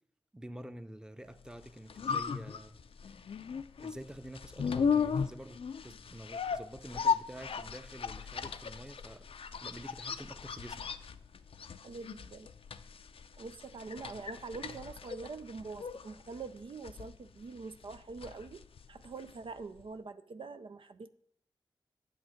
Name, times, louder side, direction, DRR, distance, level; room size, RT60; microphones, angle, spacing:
voice 1, 0.3-2.8 3.8-9.3 9.6-10.9, right 1 dB, 10° right, 0.7 m, -48 dB
sound 1, 1.5-19.5 19.8-19.9, left 6 dB, 85° left, 0.5 m, -37 dB
voice 2, 11.8-12.5 13.3-21.1, right 4 dB, 70° right, 0.5 m, -44 dB
8.8 x 7.1 x 6.4 m
cardioid pair, 45°, 9 cm